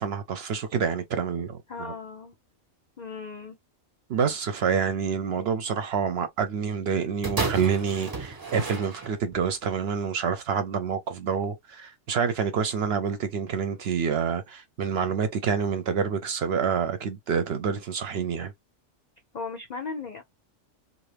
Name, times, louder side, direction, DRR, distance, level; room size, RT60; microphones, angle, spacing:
voice 1, 0.0-1.6 4.1-18.5, right 6 dB, 60° right, 0.7 m, -27 dB
voice 2, 1.7-2.3 3.0-3.6 19.3-20.2, left 4 dB, 70° left, 0.4 m, -36 dB
sound 1, 7.2-9.5 10.3-10.4, right 3 dB, 30° right, 0.4 m, -32 dB
2.5 x 2.5 x 3.2 m
omnidirectional pair, 1.4 m